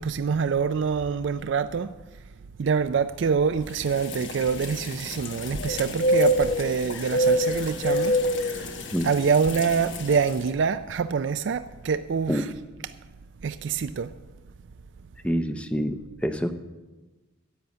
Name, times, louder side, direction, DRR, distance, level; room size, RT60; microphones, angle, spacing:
voice 1, 0.0-1.9 2.6-8.2 9.0-12.5 12.8-12.9 13.4-14.1, right 6 dB, 60° right, 0.4 m, -25 dB
sound 1, 3.8-10.4, equal, 65° left, 1.2 m, -27 dB
voice 2, 15.2-15.9 16.2-16.6, equal, 5° left, 0.6 m, -26 dB
10.5 x 8.4 x 7.9 m
head